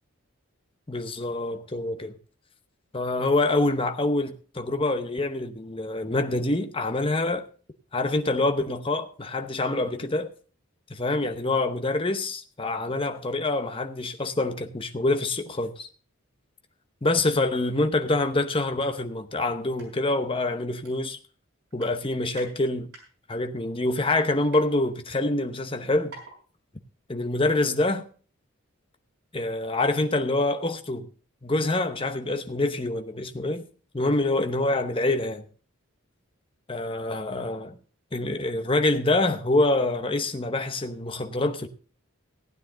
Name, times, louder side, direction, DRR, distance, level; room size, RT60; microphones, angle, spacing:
voice 1, 0.9-2.2 2.9-7.5 7.9-10.3 11.0-15.9 17.0-21.2 21.7-22.9 23.3-26.2 27.1-28.1 29.3-31.1 31.4-33.6 33.9-35.5 36.7-37.8 38.1-41.7, left 2 dB, 25° left, 0.8 m, -26 dB
sound 1, 19.8-19.9 20.2-20.3 20.8-21.4 21.7-22.5 22.9-23.4 24.0-24.6 25.4-25.5 25.7-25.8 26.1-26.4 26.7-26.8, right 2 dB, 50° right, 5.0 m, -47 dB
15.5 x 9.5 x 3.8 m
head